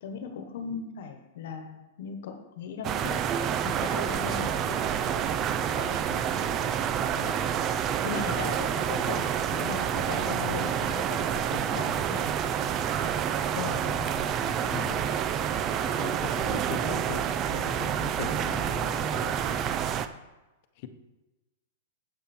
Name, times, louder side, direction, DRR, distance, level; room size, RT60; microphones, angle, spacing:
voice 1, 0.0-6.7 8.0-12.4 13.0-13.2 13.5-14.4, left 6 dB, 70° left, 6 dB, 1.2 m, -38 dB
sound 1, 2.8-20.1, right 9 dB, 30° right, 0.5 m, -28 dB
voice 2, 14.7-15.1 15.9-19.4 20.8-20.9, left 8 dB, 50° left, 9 dB, 1.0 m, -40 dB
8.6 x 8.0 x 4.4 m, 1.1 s
hypercardioid pair, 140°, 0 cm